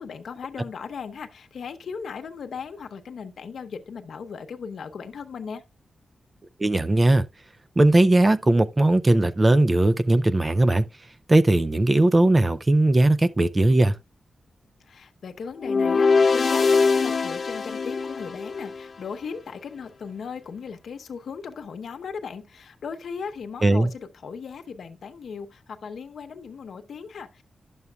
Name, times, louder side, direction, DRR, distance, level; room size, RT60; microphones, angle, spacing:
voice 1, 0.0-5.6 14.8-27.4, left 6 dB, 70° left, 0.9 m, -37 dB
voice 2, 6.6-7.2 7.8-10.9 11.3-14.0 23.6-23.9, right 2 dB, 20° right, 0.4 m, -19 dB
Blaring Brass, 15.6-18.9, left 4 dB, 40° left, 0.4 m, -22 dB
11.0 x 6.9 x 2.3 m
wide cardioid pair, 175°, 0 cm